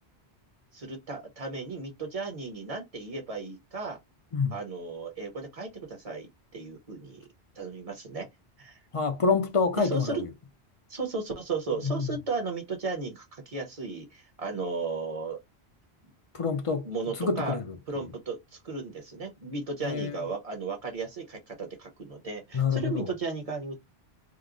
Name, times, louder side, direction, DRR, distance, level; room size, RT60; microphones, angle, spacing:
voice 1, 0.7-4.0 4.5-7.3 7.6-8.3 8.6-8.8 9.8-10.2 10.9-15.4 16.8-17.6 17.9-23.8, right 4 dB, 35° right, 0.9 m, -35 dB
voice 2, 8.9-10.3 11.8-12.1 16.3-16.9 17.2-17.8 19.8-20.2 22.5-23.1, left 5 dB, 45° left, 0.5 m, -27 dB
3.0 x 2.1 x 3.7 m
omnidirectional pair, 1.1 m